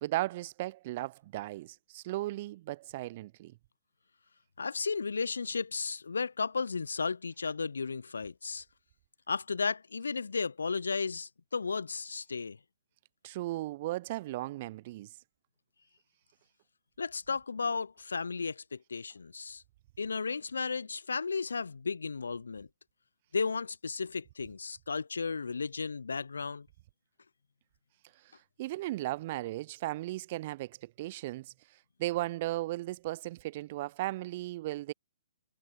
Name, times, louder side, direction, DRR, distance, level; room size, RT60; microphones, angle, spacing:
voice 1, 0.0-3.5 13.2-15.1 28.6-31.5 32.0-34.9, right 17 dB, 40° right, 0.4 m, -36 dB
voice 2, 4.6-8.6 9.3-12.6 17.0-19.6 20.0-22.7 23.3-26.7, left 5 dB, 70° left, 0.5 m, -34 dB
figure-of-eight pair, 125°, 0 cm